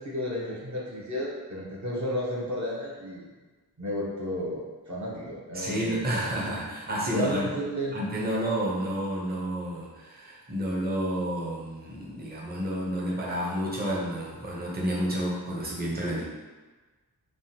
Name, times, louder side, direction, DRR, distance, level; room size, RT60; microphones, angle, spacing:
voice 1, 0.0-3.3 3.8-6.1 7.1-8.0, equal, 45° right, -5 dB, 0.9 m, -32 dB
voice 2, 5.5-7.5 7.9-16.2, equal, 25° right, -5 dB, 0.7 m, -30 dB
3.5 x 2.1 x 2.7 m, 1.3 s
wide cardioid pair, 65°, 39 cm